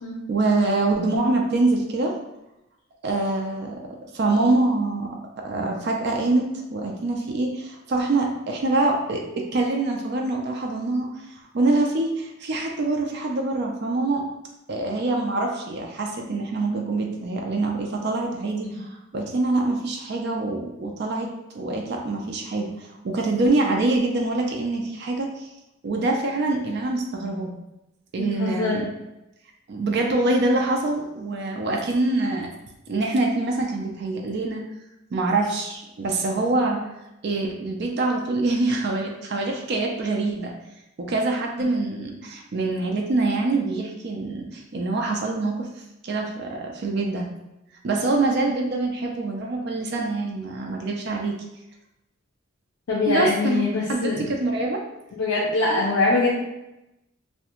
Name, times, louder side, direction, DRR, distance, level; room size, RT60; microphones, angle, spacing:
voice 1, 0.3-2.1 3.0-5.2 5.4-14.3 14.7-21.3 21.5-25.5 25.8-27.5 28.1-28.8 29.7-32.5 32.9-34.6 35.1-36.8 37.2-40.5 41.0-45.7 46.0-47.3 47.8-51.4 53.1-53.6 53.9-54.8 55.7-55.8, right 2 dB, 50° right, 1 dB, 0.3 m, -25 dB
voice 2, 28.2-28.8 52.9-54.3 55.1-56.4, left 3 dB, 80° left, -5 dB, 0.4 m, -23 dB
2.4 x 2.1 x 2.9 m, 0.92 s
head